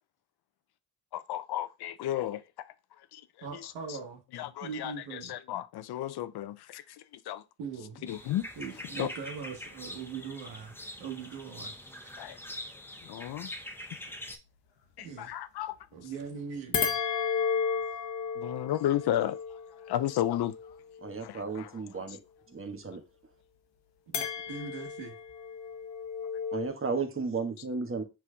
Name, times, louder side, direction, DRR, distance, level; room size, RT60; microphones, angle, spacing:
voice 1, 1.1-4.0 4.3-7.4 8.1-8.4 9.0-9.1 12.2-12.4 13.0-13.5 15.0-16.1 18.4-20.8 21.2-22.2, left 12 dB, 60° left, 0.5 m, -34 dB
voice 2, 3.4-4.2 4.6-5.3 7.6-8.1 8.6-11.7 12.0-12.1 15.0-15.3 15.9-17.0 24.1-25.2, right 6 dB, 90° right, 1.2 m, -41 dB
sound 1, 8.1-14.4, left 1 dB, 5° left, 0.6 m, -44 dB
sound 2, 16.7-21.2 24.1-26.7, left 7 dB, 80° left, 1.0 m, -33 dB
voice 3, 21.0-22.2 22.5-23.0 26.5-28.0, right 4 dB, 30° right, 1.2 m, -34 dB
5.9 x 3.4 x 2.3 m
supercardioid pair, 55°, 44 cm